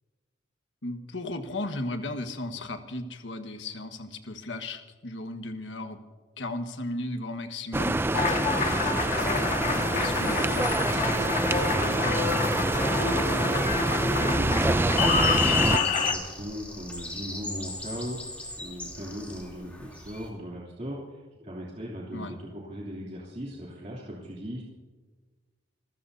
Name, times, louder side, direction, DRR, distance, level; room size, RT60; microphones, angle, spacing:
voice 1, 0.8-6.0 6.4-8.5 9.6-11.1 11.9-12.2 15.3-15.6 22.1-22.3, left 2 dB, 75° left, 6 dB, 1.4 m, -36 dB
sound 1, 7.7-15.8, right 2 dB, 10° right, 0.4 m, -26 dB
Applause, 8.1-16.1, left 5 dB, 45° left, 1.7 m, -28 dB
voice 2, 9.6-10.6 11.4-24.6, equal, 40° right, -5 dB, 3.0 m, -38 dB
sound 2, 13.7-20.3, left 1 dB, 10° left, 3.1 m, -40 dB
27.5 x 15.0 x 2.7 m, 1.3 s
head